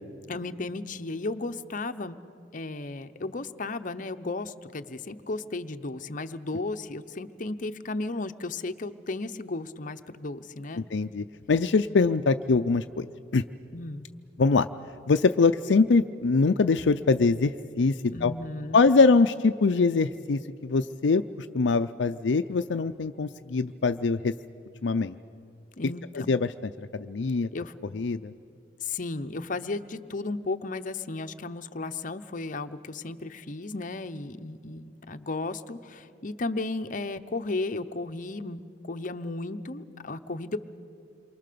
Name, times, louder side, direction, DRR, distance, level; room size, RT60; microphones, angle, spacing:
voice 1, 0.3-2.2 2.5-10.9 13.7-14.1 18.1-18.8 25.8-26.3 27.5-27.7 28.8-40.6, left 2 dB, 45° left, 9 dB, 0.8 m, -34 dB
voice 2, 10.9-13.1 13.3-13.4 14.4-14.7 15.1-17.5 17.8-17.9 18.2-18.3 18.7-21.2 21.5-24.3 24.8-25.1 26.1-27.5 27.9-28.3, left 4 dB, 70° left, 9 dB, 0.5 m, -23 dB
28.0 x 24.0 x 6.8 m, 2.5 s
head